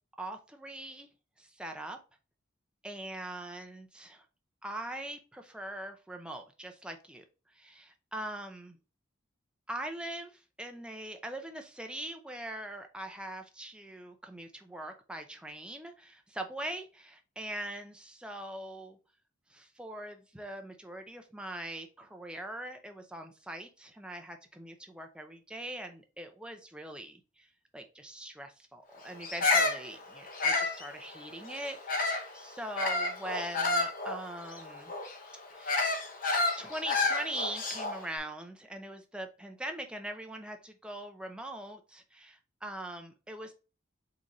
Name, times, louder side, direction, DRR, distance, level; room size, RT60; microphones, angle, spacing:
voice 1, 0.2-1.1 1.4-2.0 2.8-4.2 4.6-8.8 9.7-19.0 19.5-27.5 27.7-34.9 35.5-35.8 36.6-43.5, right 1 dB, 5° right, 0.5 m, -42 dB
Bird vocalization bird call bird song, 29.2-32.3 32.8-38.1, left 3 dB, 40° left, 0.8 m, -30 dB
3.9 x 3.8 x 3.0 m
head